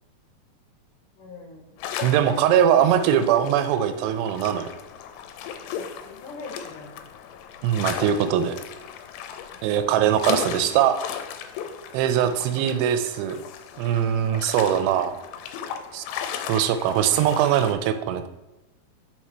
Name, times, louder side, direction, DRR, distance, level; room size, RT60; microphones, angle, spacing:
voice 1, 1.2-1.8 2.8-3.1 5.7-7.0 9.5-9.7 12.1-12.4, left 3 dB, 70° left, -2 dB, 2.1 m, -43 dB
sound 1, 1.8-17.7, left 8 dB, 85° left, 2.7 m, -36 dB
voice 2, 2.0-4.7 7.6-8.6 9.6-11.0 11.9-13.4 13.8-15.1 15.9-16.0 16.5-18.3, right 9 dB, 85° right, 9 dB, 2.6 m, -21 dB
5.9 x 4.8 x 4.3 m, 1.1 s
omnidirectional pair, 4.8 m